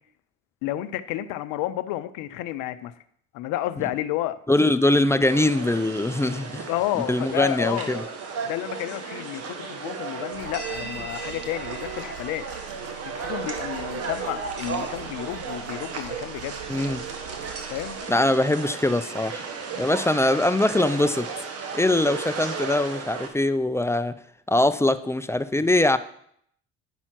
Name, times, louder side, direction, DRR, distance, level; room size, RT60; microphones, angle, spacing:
voice 1, 0.6-2.9 3.3-4.4 6.7-8.0 8.4-12.5 13.1-16.6 17.7-18.0, left 14 dB, 70° left, 13 dB, 0.7 m, -31 dB
voice 2, 4.5-6.7 7.1-8.0 16.7-17.0 18.1-19.5 19.8-21.3 21.7-24.1 24.5-26.0, left 1 dB, 10° left, 11 dB, 0.5 m, -22 dB
sound 1, 5.3-23.3, right 5 dB, 45° right, 1.3 m, -34 dB
sound 2, 10.3-18.0, right 8 dB, 65° right, 3.1 m, -45 dB
10.0 x 5.6 x 4.5 m, 0.67 s
hypercardioid pair, 60°, 32 cm